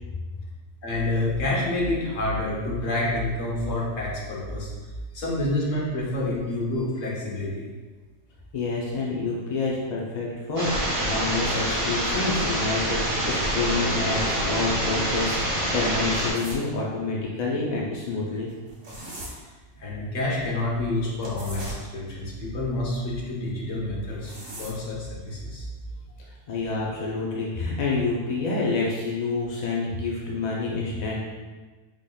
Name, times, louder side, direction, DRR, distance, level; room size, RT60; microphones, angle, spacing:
voice 1, 0.8-4.7 5.1-7.7 19.2-19.3 19.8-24.3 24.6-25.7, left 1 dB, 70° left, -4 dB, 1.4 m, -28 dB
voice 2, 8.5-18.5 26.5-31.2, left 3 dB, 55° left, -4 dB, 0.4 m, -28 dB
sound 1, 10.6-16.3, right 1 dB, 25° right, 0.9 m, -26 dB
sound 2, 16.3-16.7 18.5-19.3 21.2-21.8 24.0-24.8, right 1 dB, 70° right, 1.5 m, -39 dB
5.0 x 3.7 x 2.2 m, 1.3 s
omnidirectional pair, 1.4 m